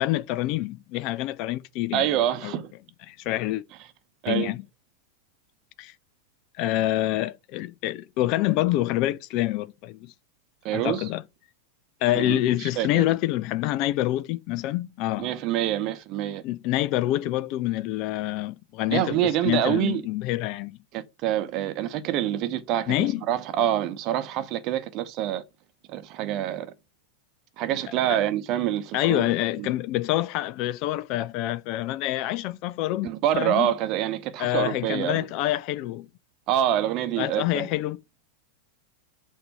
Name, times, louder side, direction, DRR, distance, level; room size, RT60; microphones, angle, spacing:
voice 1, 0.0-2.1 2.4-2.6 3.1-3.6 4.3-4.6 5.8-5.9 6.6-10.1 10.7-11.2 12.0-15.3 16.4-19.2 19.4-20.8 22.9-23.2 28.1-28.2 28.9-33.1 33.3-33.7 34.4-36.1 37.2-38.0, left 15 dB, 40° left, 0.3 m, -26 dB
voice 2, 1.9-2.7 4.2-4.5 10.6-11.0 12.1-13.1 15.2-16.4 18.9-20.0 20.9-25.4 25.9-26.7 27.6-29.2 29.6-29.7 33.0-35.3 36.5-37.7, right 11 dB, 40° right, 0.8 m, -26 dB
6.7 x 2.7 x 5.4 m
figure-of-eight pair, 90°, 0 cm